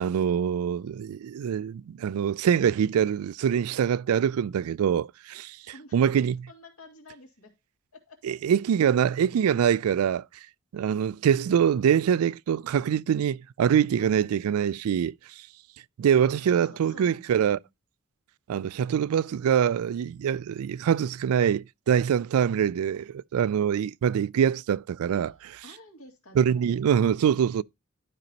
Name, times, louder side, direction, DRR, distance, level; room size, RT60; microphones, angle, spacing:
voice 1, 0.0-5.6 5.9-6.5 8.2-10.2 10.7-15.1 16.0-17.6 18.5-25.3 26.4-27.6, right 8 dB, 85° right, 0.3 m, -24 dB
voice 2, 5.7-6.0 6.5-7.5 7.9-8.2 13.9-14.2 16.5-17.7 25.6-26.7, left 2 dB, 80° left, 2.3 m, -50 dB
12.0 x 5.2 x 2.9 m
head